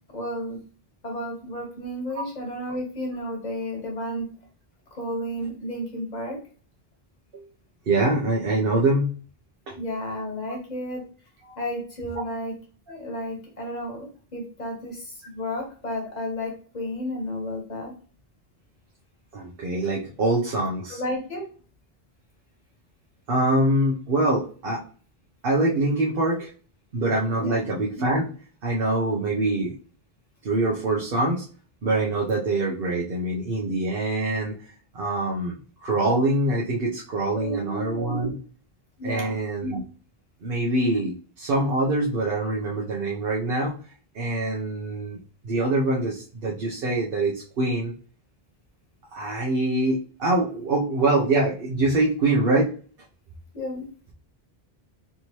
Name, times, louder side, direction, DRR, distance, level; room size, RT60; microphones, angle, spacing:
voice 1, 0.1-0.6 1.0-4.3 4.9-6.4 9.8-11.0 11.6-12.6 12.9-17.9 20.9-21.5 27.4-27.6 37.3-38.4 39.0-39.4 53.5-53.9, left 1 dB, 45° left, 0 dB, 1.3 m, -32 dB
voice 2, 7.9-9.1 9.7-9.8 19.3-21.0 23.3-24.8 25.4-26.5 26.9-28.3 28.6-29.7 30.4-31.4 31.8-34.6 34.9-35.5 35.8-38.3 39.0-39.8 40.4-43.7 44.1-45.2 45.4-47.9 49.1-52.7, right 2 dB, 65° right, -4 dB, 0.9 m, -24 dB
3.6 x 2.8 x 3.0 m, 0.40 s
omnidirectional pair, 1.0 m